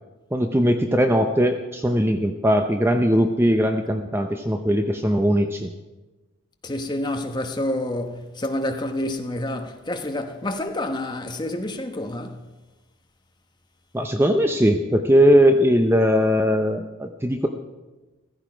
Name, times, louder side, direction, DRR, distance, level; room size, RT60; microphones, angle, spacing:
voice 1, 0.3-5.7 13.9-17.5, equal, 10° right, 0.6 m, -20 dB
voice 2, 6.6-12.4, left 1 dB, 20° left, 1.1 m, -28 dB
15.0 x 15.0 x 5.1 m
head